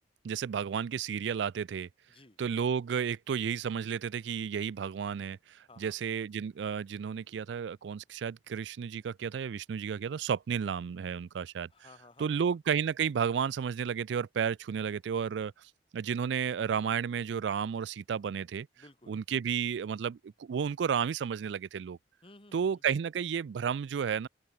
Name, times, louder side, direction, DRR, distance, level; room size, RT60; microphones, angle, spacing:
voice 1, 0.2-1.9 2.4-11.7 12.2-18.7 19.1-22.0 22.5-24.3, right 7 dB, 75° right, 0.4 m, -32 dB
voice 2, 11.7-12.6 18.8-19.1 22.2-22.8, left 2 dB, 30° left, 3.0 m, -56 dB
open air
head